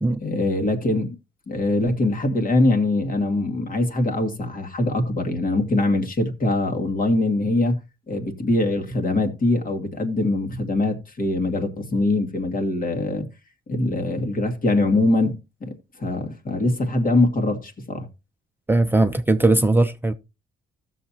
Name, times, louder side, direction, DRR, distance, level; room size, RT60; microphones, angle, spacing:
voice 1, 0.1-1.2 1.5-7.8 8.1-13.3 13.7-15.4 16.0-18.1, left 2 dB, 45° left, 2.3 m, -22 dB
voice 2, 18.7-20.1, right 2 dB, 10° right, 0.7 m, -19 dB
15.0 x 6.7 x 2.9 m
cardioid pair, 90°, 20 cm